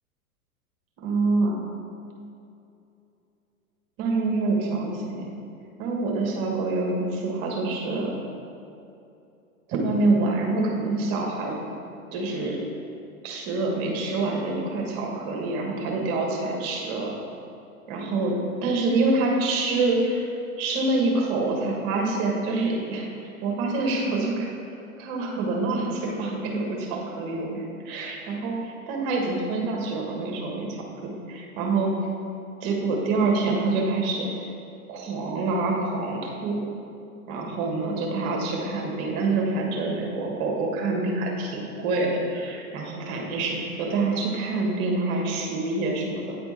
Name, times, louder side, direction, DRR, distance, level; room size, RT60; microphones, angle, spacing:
voice 1, 1.0-1.6 4.0-5.3 5.8-8.1 9.7-11.6 12.1-12.6 13.2-17.1 17.9-20.3 20.6-24.5 25.0-30.8 31.3-31.9 32.6-34.4 34.9-36.6 37.3-46.4, right 3 dB, 40° right, -1 dB, 1.6 m, -26 dB
9.2 x 4.3 x 4.3 m, 2.7 s
figure-of-eight pair, 105°, 44 cm